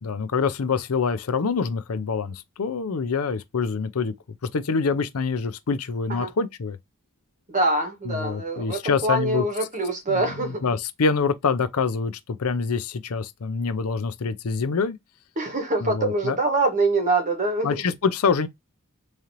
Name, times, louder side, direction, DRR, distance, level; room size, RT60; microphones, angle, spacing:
voice 1, 0.0-4.1 4.5-6.8 8.1-9.4 10.1-12.1 12.4-15.0 15.8-16.4 17.6-18.5, left 5 dB, 90° left, 0.6 m, -25 dB
voice 2, 7.5-10.7 15.4-17.8, right 2 dB, 35° right, 1.5 m, -24 dB
3.8 x 3.2 x 2.9 m
head